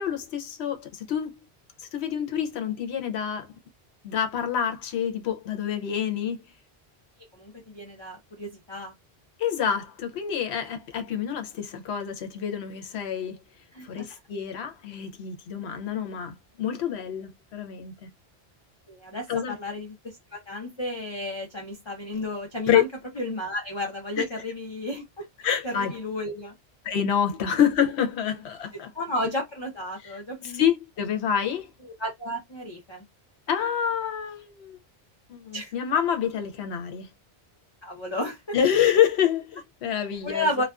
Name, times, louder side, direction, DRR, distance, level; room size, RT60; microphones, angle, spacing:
voice 1, 0.0-1.4 1.8-3.5 4.0-6.4 9.4-13.4 13.8-18.1 19.3-19.5 22.7-22.8 24.2-24.3 25.4-26.0 26.8-28.9 30.0-30.1 30.4-31.7 33.5-34.8 35.3-37.1 38.5-40.5, left 9 dB, 85° left, 0.9 m, -27 dB
voice 2, 7.3-8.9 13.7-14.1 18.9-22.9 23.2-25.3 25.6-26.5 28.9-30.6 31.8-33.0 35.5-35.7 37.8-38.6 40.2-40.6, left 1 dB, 30° left, 0.6 m, -32 dB
2.4 x 2.2 x 2.3 m
omnidirectional pair, 1.1 m